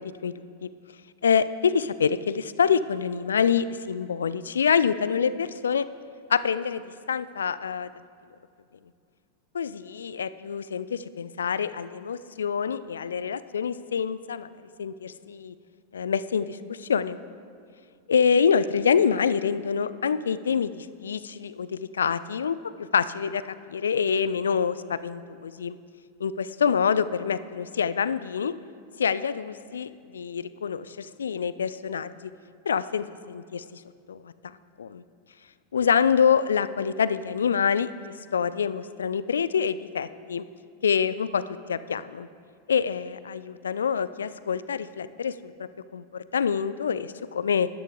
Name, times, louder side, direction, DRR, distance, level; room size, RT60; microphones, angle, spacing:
voice 1, 0.2-0.7 1.2-5.9 6.3-7.9 9.5-14.5 14.8-15.5 15.9-17.2 18.1-23.4 23.7-25.8 26.2-28.5 29.0-32.3 32.7-33.8 34.1-34.3 34.8-35.0 35.7-40.4 40.8-41.4 41.7-42.3 42.7-45.5 45.9-47.7, left 6 dB, 70° left, 16 dB, 0.4 m, -26 dB
13.0 x 11.0 x 3.7 m, 2.2 s
figure-of-eight pair, 90°, 0 cm